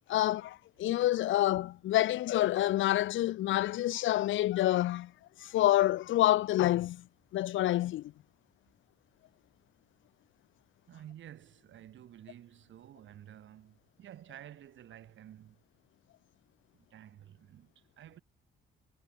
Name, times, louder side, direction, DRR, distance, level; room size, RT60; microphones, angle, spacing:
voice 1, 0.1-5.1 5.4-7.0 7.3-8.1, left 14 dB, 75° left, 0.8 m, -28 dB
voice 2, 10.9-15.6 16.7-18.2, right 11 dB, 70° right, 5.9 m, -52 dB
cardioid pair, 90°, 20 cm